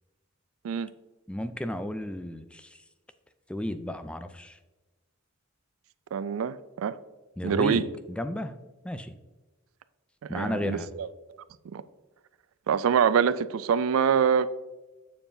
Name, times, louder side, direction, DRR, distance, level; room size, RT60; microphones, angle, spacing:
voice 1, 1.3-2.8 3.5-4.6 7.4-8.6 8.8-9.1 10.3-10.9, left 1 dB, 5° left, 0.3 m, -33 dB
voice 2, 6.1-7.0 7.4-7.9 10.3-11.1 11.7-11.8 12.7-14.5, right 7 dB, 75° right, 0.3 m, -25 dB
7.3 x 6.8 x 2.6 m
head